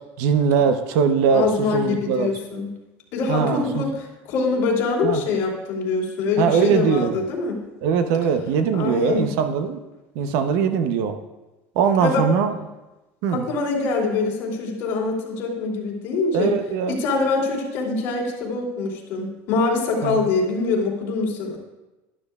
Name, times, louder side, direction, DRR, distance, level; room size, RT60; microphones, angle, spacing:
voice 1, 0.2-2.3 3.3-3.8 5.0-5.2 6.4-7.2 7.8-9.8 10.2-11.2 11.8-12.5 13.2-13.4 16.3-17.0 20.0-20.3, right 6 dB, 60° right, 8 dB, 0.7 m, -21 dB
voice 2, 1.3-2.7 3.1-7.6 8.7-9.3 12.0-12.3 13.3-16.5 16.9-21.6, left 4 dB, 50° left, -4 dB, 3.0 m, -24 dB
12.5 x 12.0 x 2.4 m, 1.1 s
cardioid pair, 170°, 6 cm